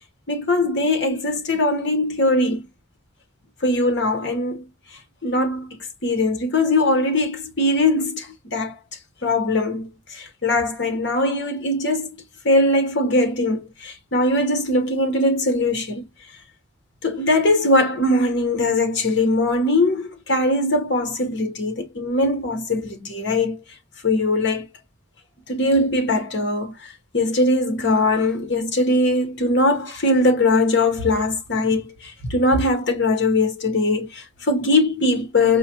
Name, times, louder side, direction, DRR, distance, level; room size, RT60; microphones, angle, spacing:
voice 1, 0.3-2.7 3.6-4.6 5.2-8.8 9.2-12.1 12.4-16.0 17.0-23.6 24.0-24.7 25.5-35.6, left 2 dB, 55° left, 1.0 m, -21 dB
4.8 x 2.1 x 2.8 m
head